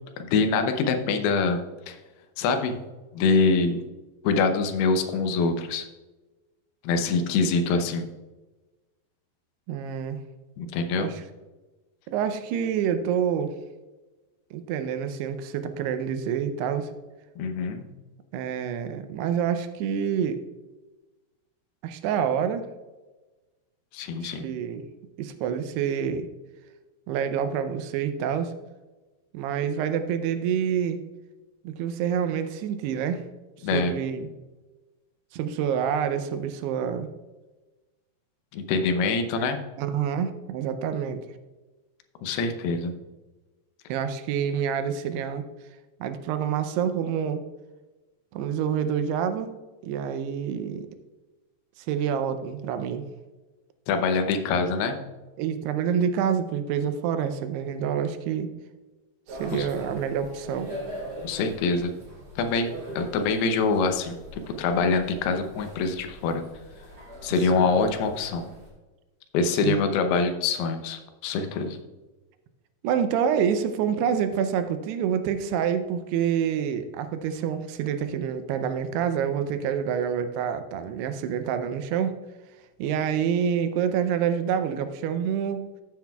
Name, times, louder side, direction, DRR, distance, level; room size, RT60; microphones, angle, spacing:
voice 1, 0.2-1.6 1.9-2.0 2.4-2.8 3.1-3.8 4.2-5.9 6.8-8.1 10.6-11.1 17.4-17.8 23.9-24.5 33.6-33.9 38.5-39.6 42.2-42.9 53.9-55.0 59.5-59.7 61.2-61.9 62.4-66.4 67.2-68.5 69.3-71.8, left 4 dB, 80° left, 6 dB, 2.7 m, -25 dB
voice 2, 9.7-10.2 11.0-11.2 12.1-13.5 14.5-16.9 18.3-20.4 21.8-22.7 24.2-24.8 25.2-26.3 27.1-28.5 29.3-31.0 31.6-33.2 33.7-34.3 35.3-37.1 39.8-41.2 43.9-45.4 46.0-47.4 48.3-49.5 49.8-50.9 51.9-53.1 55.4-58.5 59.4-60.7 67.5-67.7 69.6-69.8 72.8-82.1 82.8-85.6, right 8 dB, 85° right, 9 dB, 2.7 m, -27 dB
sound 1, 59.3-68.7, equal, 40° right, 3.5 m, -42 dB
14.5 x 7.7 x 2.3 m, 1.2 s
omnidirectional pair, 4.7 m